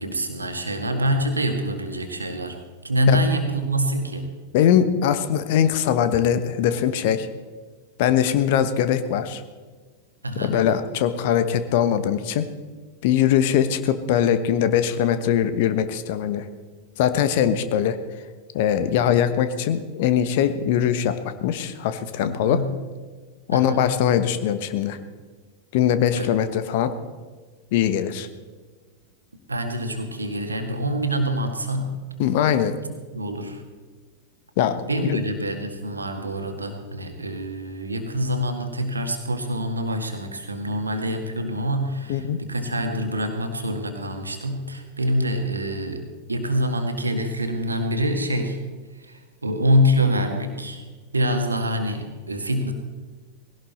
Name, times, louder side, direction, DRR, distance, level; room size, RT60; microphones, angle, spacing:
voice 1, 0.0-2.6 2.8-4.3 10.2-10.6 22.2-22.7 23.5-23.9 26.2-26.3 29.5-31.9 32.8-33.6 34.9-48.6 49.1-50.8 51.1-52.7, equal, 80° right, 5 dB, 1.9 m, -25 dB
voice 2, 4.5-7.3 8.0-9.4 10.4-12.5 13.0-16.5 17.0-18.0 18.5-22.6 23.5-25.0 25.7-26.9 27.7-28.3 32.2-32.7 34.6-34.7 35.1-35.2 42.1-42.4, left 9 dB, 50° left, 11 dB, 1.1 m, -21 dB
19.5 x 17.0 x 4.3 m, 1.4 s
figure-of-eight pair, 90°, 0 cm